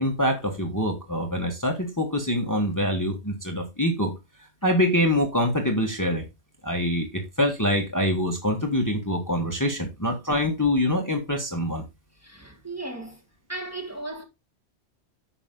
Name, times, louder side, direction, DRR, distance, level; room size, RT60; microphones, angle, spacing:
voice 1, 0.0-4.1 4.6-6.2 6.6-11.8, left 1 dB, 15° left, 1.5 m, -25 dB
voice 2, 12.2-13.2 13.5-14.2, right 2 dB, 15° right, 1.8 m, -36 dB
9.8 x 6.1 x 3.8 m
omnidirectional pair, 1.2 m